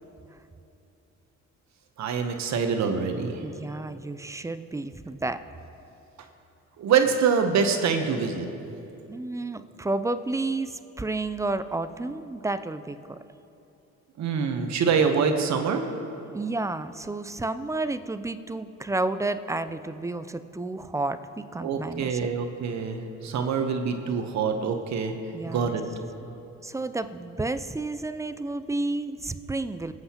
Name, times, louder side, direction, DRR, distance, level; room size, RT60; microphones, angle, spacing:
voice 1, 2.0-3.4 6.8-8.5 14.2-15.8 21.6-25.1 25.5-25.8, right 6 dB, 65° right, 6 dB, 0.9 m, -25 dB
voice 2, 3.4-5.4 9.1-13.2 16.3-22.3 25.3-25.8 26.6-29.9, right 2 dB, 10° right, 12 dB, 0.3 m, -31 dB
20.5 x 7.8 x 2.9 m, 2.8 s
cardioid pair, 90°, 30 cm